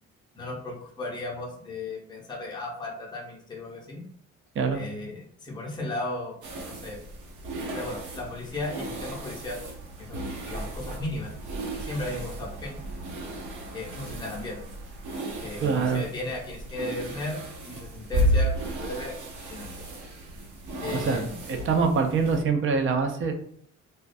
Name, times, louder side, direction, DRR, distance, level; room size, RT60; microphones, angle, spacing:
voice 1, 0.3-4.0 4.7-6.3 6.7-7.0 7.7-9.6 10.0-11.3 11.7-12.8 13.7-14.6 15.4-19.2 19.5-19.9 20.8-21.4, left 2 dB, 15° left, -3 dB, 0.6 m, -35 dB
sound 1, 6.4-22.4, right 1 dB, 80° right, 0.8 m, -33 dB
voice 2, 15.6-16.0 20.9-23.3, right 5 dB, 45° right, 4 dB, 0.5 m, -25 dB
2.2 x 2.1 x 2.5 m, 0.63 s
cardioid pair, 90°, 30 cm